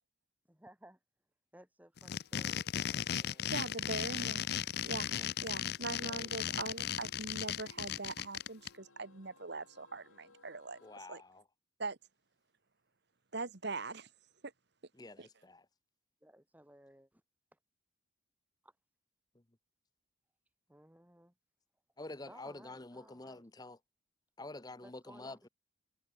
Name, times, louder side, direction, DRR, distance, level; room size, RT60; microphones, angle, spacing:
voice 1, 0.5-1.0 1.5-4.3 16.2-17.2 17.5-17.6 18.6-18.8 20.5-21.3 22.3-23.5 24.8-25.5, right 1 dB, 10° right, 1.9 m, -60 dB
sound 1, 2.0-8.7, left 9 dB, 50° left, 0.5 m, -36 dB
sound 2, 2.2-11.0, left 3 dB, 90° left, 3.2 m, -65 dB
voice 2, 3.5-4.4 4.8-5.1 5.4-10.8 11.1-11.2 11.8-12.0 13.3-14.1 15.2-15.3, right 3 dB, 55° right, 1.4 m, -41 dB
voice 3, 6.0-6.3 10.8-11.4 14.9-15.7 19.3-19.4 22.0-23.8 24.4-25.5, left 2 dB, 20° left, 0.8 m, -48 dB
head